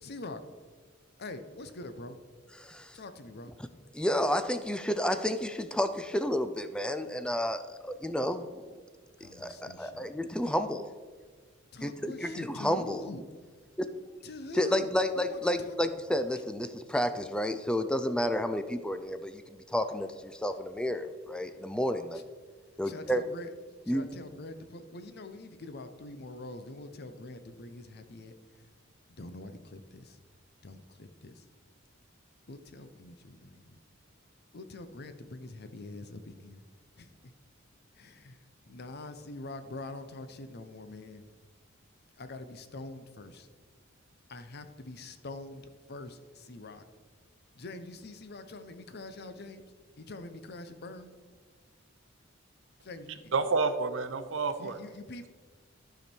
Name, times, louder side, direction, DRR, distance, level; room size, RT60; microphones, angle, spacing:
voice 1, 0.0-0.4 1.2-2.2 2.9-3.5 9.2-10.1 11.7-13.2 14.2-15.8 16.1-16.2 22.1-22.2 22.8-23.5 23.9-28.7 29.1-30.2 30.6-31.5 32.5-33.8 34.5-36.6 37.0-37.3 37.9-41.2 42.2-43.5 44.3-46.8 47.5-51.1 52.8-53.3 54.6-55.3, left 2 dB, 55° left, 10 dB, 0.7 m, -44 dB
voice 2, 2.6-3.0 3.9-7.6 8.0-8.6 9.2-10.9 11.8-13.0 14.5-22.2 22.8-23.2 23.9-24.1, equal, 5° left, 10 dB, 0.4 m, -31 dB
voice 3, 53.3-54.8, right 4 dB, 70° right, 10 dB, 0.7 m, -29 dB
12.5 x 5.1 x 4.4 m, 1.5 s
head